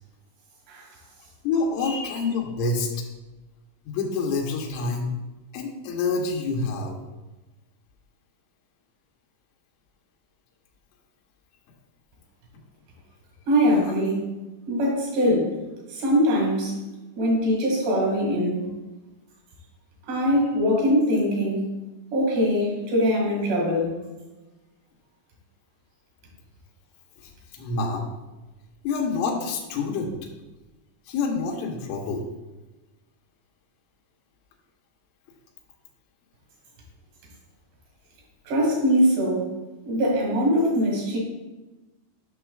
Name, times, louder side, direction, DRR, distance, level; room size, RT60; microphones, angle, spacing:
voice 1, 1.4-2.9 3.9-5.1 5.5-7.0 27.5-28.1 28.9-30.2 31.1-32.2, left 4 dB, 85° left, -1 dB, 3.4 m, -27 dB
voice 2, 13.5-14.2 14.7-15.5 15.9-16.8 17.2-18.7 20.1-21.7 22.1-23.9 38.5-39.5 39.9-41.2, equal, 65° right, -2 dB, 4.1 m, -22 dB
13.5 x 6.3 x 2.4 m, 1.1 s
omnidirectional pair, 5.3 m